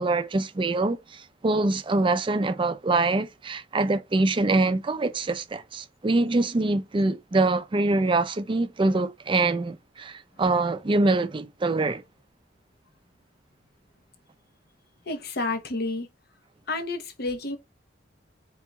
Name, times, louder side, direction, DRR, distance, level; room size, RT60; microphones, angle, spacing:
voice 1, 0.0-12.0, right 2 dB, 25° right, 0.4 m, -24 dB
voice 2, 15.1-16.1 16.7-17.6, left 2 dB, 60° left, 0.9 m, -30 dB
4.4 x 3.9 x 2.3 m
head